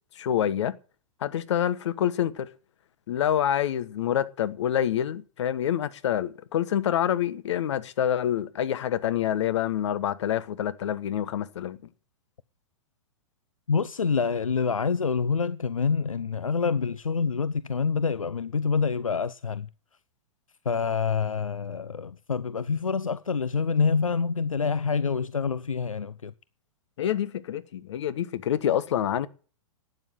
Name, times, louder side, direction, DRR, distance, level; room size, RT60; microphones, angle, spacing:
voice 1, 0.1-0.8 1.2-2.5 3.1-11.8 27.0-29.3, left 10 dB, 60° left, 1.4 m, -27 dB
voice 2, 13.7-19.7 20.7-26.3, left 5 dB, 85° left, 0.6 m, -26 dB
12.5 x 9.5 x 9.2 m
figure-of-eight pair, 105°, 17 cm